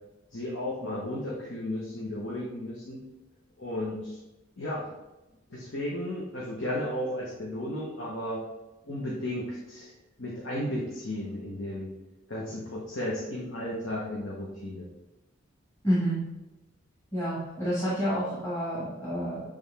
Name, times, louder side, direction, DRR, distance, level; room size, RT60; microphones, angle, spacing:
voice 1, 0.3-3.0 3.6-4.2 4.6-4.9 5.5-8.4 8.8-9.9 10.2-11.9 12.3-14.9, left 1 dB, 75° left, -5 dB, 1.2 m, -34 dB
voice 2, 15.8-16.2 17.1-19.4, equal, 20° left, -8 dB, 1.7 m, -29 dB
7.7 x 3.5 x 3.5 m, 1.0 s
head